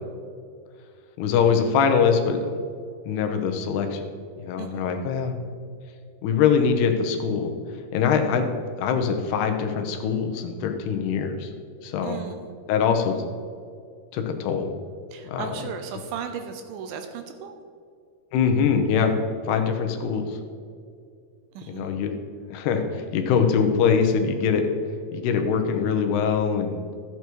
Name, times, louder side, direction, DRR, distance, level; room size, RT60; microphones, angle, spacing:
voice 1, 1.2-2.4 3.1-4.0 4.4-5.3 6.2-7.5 7.9-8.5 8.8-11.5 11.8-12.2 12.7-13.2 14.1-14.7 15.2-15.5 18.3-19.1 19.5-20.4 21.7-22.1 22.5-24.6 25.1-26.8, left 6 dB, 80° left, 5 dB, 3.0 m, -23 dB
voice 2, 4.6-5.0 12.0-12.5 15.1-17.5 21.6-22.0, right 7 dB, 75° right, 6 dB, 2.3 m, -36 dB
13.5 x 8.3 x 4.6 m, 2.3 s
omnidirectional pair, 4.6 m